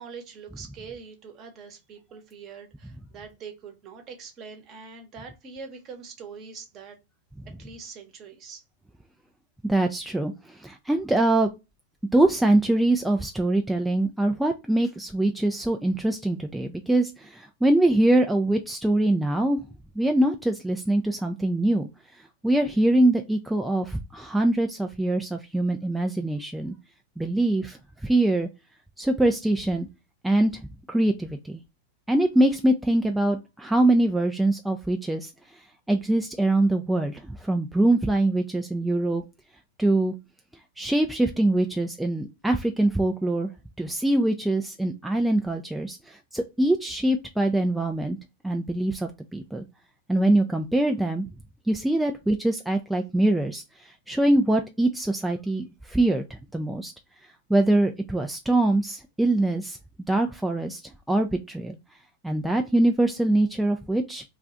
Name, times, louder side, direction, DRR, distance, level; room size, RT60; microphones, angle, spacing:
voice 1, 0.0-7.0 7.6-8.6, right 5 dB, 40° right, 5 dB, 0.9 m, -43 dB
voice 2, 9.6-11.5 12.1-19.6 20.0-21.9 22.2-26.7 27.2-28.5 29.0-29.9 30.2-30.6 30.9-31.6 32.1-35.3 35.9-39.2 39.8-40.1 40.8-43.5 43.8-48.2 48.4-49.6 50.1-51.3 51.7-56.9 57.5-59.8 60.1-61.8 62.2-64.2, right 1 dB, 5° right, 3 dB, 0.3 m, -23 dB
2.4 x 2.3 x 3.8 m, 0.25 s
hypercardioid pair, 110°, 0 cm